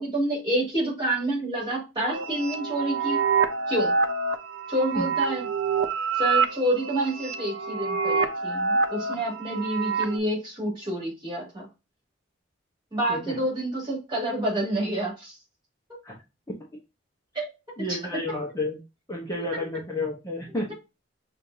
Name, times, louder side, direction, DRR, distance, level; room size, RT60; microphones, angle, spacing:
voice 1, 0.0-3.2 3.7-3.9 4.7-5.5 6.2-11.6 12.9-15.3 17.3-18.0 19.3-19.4, right 1 dB, 25° right, -3 dB, 3.0 m, -28 dB
sound 1, 2.1-10.2, right 5 dB, 75° right, 0.6 m, -27 dB
voice 2, 17.8-18.8 19.1-20.7, left 1 dB, 15° left, -3 dB, 0.9 m, -31 dB
6.4 x 2.7 x 2.7 m, 0.26 s
head